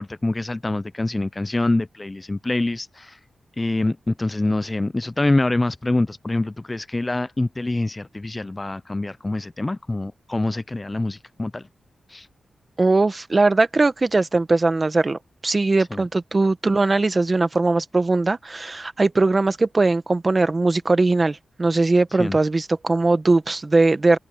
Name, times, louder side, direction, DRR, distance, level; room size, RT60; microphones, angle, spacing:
voice 1, 0.0-3.2 3.6-11.7 12.1-12.3 15.9-16.1 22.2-22.4, left 2 dB, 25° left, 0.4 m, -25 dB
voice 2, 12.8-24.2, right 3 dB, 30° right, 1.4 m, -20 dB
cardioid pair, 80°, 0 cm